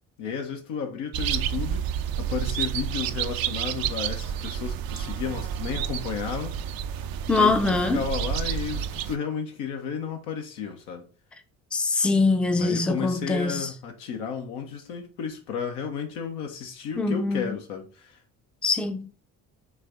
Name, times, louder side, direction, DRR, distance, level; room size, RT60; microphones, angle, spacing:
voice 1, 0.2-6.6 7.3-11.1 12.5-18.2, left 7 dB, 75° left, 1.0 m, -33 dB
sound 1, 1.1-9.2, right 9 dB, 55° right, 0.5 m, -30 dB
voice 2, 7.3-8.1 11.7-13.7 17.0-17.5 18.6-19.1, left 3 dB, ahead, 0.5 m, -23 dB
5.4 x 3.4 x 2.6 m
hypercardioid pair, 50°, 44 cm